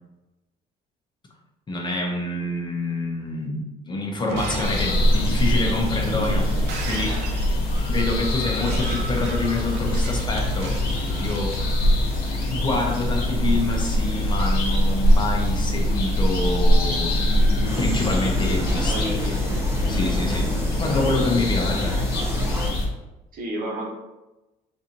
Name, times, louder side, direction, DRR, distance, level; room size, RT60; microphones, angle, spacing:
voice 1, 1.7-6.5 6.8-7.2 7.9-10.8 11.2-11.6 12.5-17.2 17.8-19.1 19.9-20.5 20.8-22.0, left 2 dB, 25° left, 0 dB, 0.7 m, -27 dB
Shatter, 4.1-12.2, right 3 dB, 85° right, 0.6 m, -36 dB
sound 1, 4.6-22.9, left 1 dB, 65° left, 1.0 m, -23 dB
sound 2, 17.6-22.7, equal, 15° right, 0.7 m, -28 dB
voice 2, 18.8-19.7 21.0-21.1 23.3-23.9, right 1 dB, 55° right, -2 dB, 1.0 m, -32 dB
4.0 x 2.6 x 2.9 m, 1.0 s
cardioid pair, 110°, 17 cm